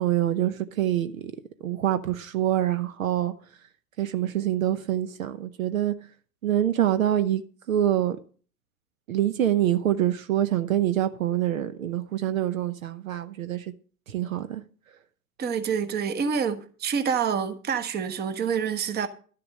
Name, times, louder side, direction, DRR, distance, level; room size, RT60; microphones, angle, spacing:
voice 1, 0.0-1.3 1.6-3.3 4.0-5.9 6.4-7.4 7.7-8.2 9.1-13.7 14.1-14.6, right 11 dB, 65° right, 0.9 m, -25 dB
voice 2, 15.4-19.1, right 6 dB, 20° right, 1.2 m, -27 dB
12.5 x 6.8 x 6.4 m
figure-of-eight pair, 100°, 45 cm